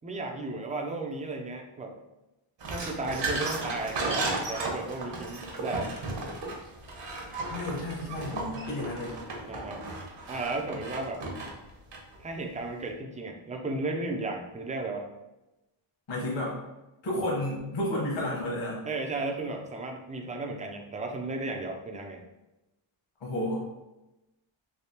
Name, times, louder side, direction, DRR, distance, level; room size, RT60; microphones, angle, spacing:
voice 1, 0.0-2.0 2.7-5.9 9.5-9.9 10.3-11.2 12.2-15.1 18.9-22.2, right 2 dB, 15° right, 2 dB, 0.3 m, -34 dB
sound 1, 2.6-12.2, right 2 dB, 60° right, 0.9 m, -35 dB
voice 2, 7.5-9.1 16.1-16.6 17.0-18.8 23.2-23.6, left 1 dB, 60° left, -4 dB, 1.2 m, -31 dB
3.4 x 2.8 x 2.8 m, 0.97 s
wide cardioid pair, 125°, 49 cm